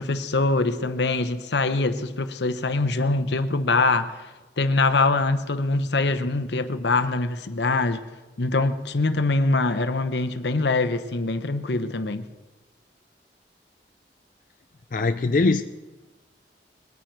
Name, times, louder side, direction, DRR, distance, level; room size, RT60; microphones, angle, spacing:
voice 1, 0.0-4.2 4.6-8.0 8.4-12.3, left 3 dB, 80° left, 0.9 m, -23 dB
voice 2, 14.9-15.6, left 3 dB, 45° left, 0.4 m, -21 dB
21.0 x 9.2 x 4.6 m
head